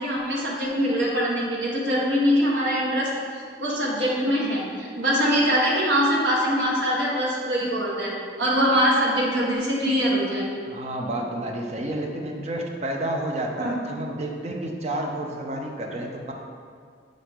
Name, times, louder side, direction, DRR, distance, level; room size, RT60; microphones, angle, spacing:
voice 1, 0.0-3.1 3.6-10.5 13.6-13.7, equal, 75° right, -4 dB, 1.3 m, -23 dB
voice 2, 10.7-16.3, right 1 dB, 35° right, 1 dB, 0.5 m, -30 dB
7.2 x 3.9 x 3.5 m, 2.1 s
head